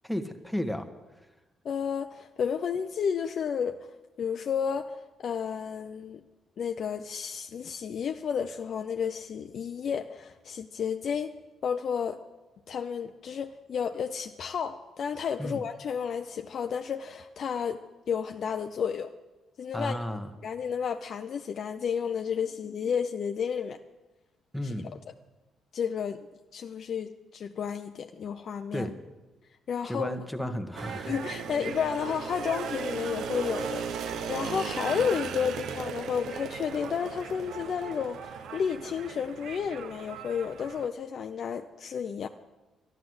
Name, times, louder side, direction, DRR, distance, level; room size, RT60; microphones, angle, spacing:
voice 1, 0.0-0.9 15.4-15.6 19.7-20.3 24.5-24.9 28.7-28.9 29.8-31.1, equal, ahead, 7 dB, 1.3 m, -33 dB
voice 2, 1.6-3.9 4.2-6.2 6.6-11.3 11.6-12.2 12.7-19.1 19.6-20.0 20.4-23.8 24.6-25.1 25.7-26.3 26.5-28.9 29.7-30.5 31.1-42.3, left 7 dB, 60° left, 6 dB, 0.6 m, -32 dB
sound 1, 30.8-40.9, right 7 dB, 75° right, 0.9 m, -37 dB
12.0 x 11.0 x 7.9 m, 1.1 s
cardioid pair, 90°, 0 cm